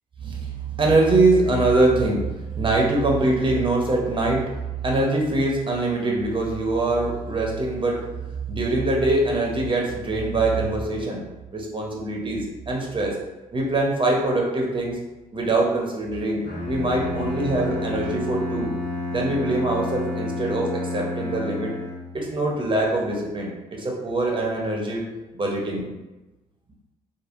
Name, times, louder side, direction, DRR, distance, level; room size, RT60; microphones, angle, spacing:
voice 1, 0.2-4.5 4.8-8.0 8.5-11.2 11.5-13.2 13.5-15.0 15.3-18.7 19.1-21.7 22.1-25.0 25.3-25.9, right 2 dB, 30° right, -1 dB, 0.9 m, -23 dB
Bowed string instrument, 16.4-22.3, left 2 dB, 55° left, 0.8 m, -30 dB
3.3 x 2.1 x 2.6 m, 1.1 s
hypercardioid pair, 45°, 17 cm